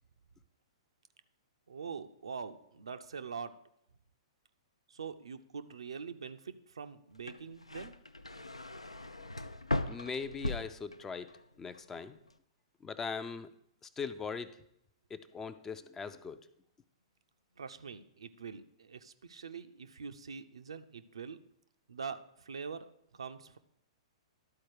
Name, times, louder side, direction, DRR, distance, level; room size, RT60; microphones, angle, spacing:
voice 1, 1.7-3.5 4.9-8.0 17.6-21.4 21.9-22.8 23.1-23.6, right 6 dB, 70° right, 9 dB, 0.5 m, -44 dB
sound 1, 7.1-11.4 11.7-12.3, left 1 dB, 85° left, 0.4 m, -38 dB
voice 2, 9.9-11.3 11.6-12.2 12.8-13.5 13.8-14.5 15.1-16.5, left 5 dB, 15° left, 11 dB, 0.4 m, -40 dB
12.0 x 4.3 x 4.7 m, 0.76 s
figure-of-eight pair, 110°, 3 cm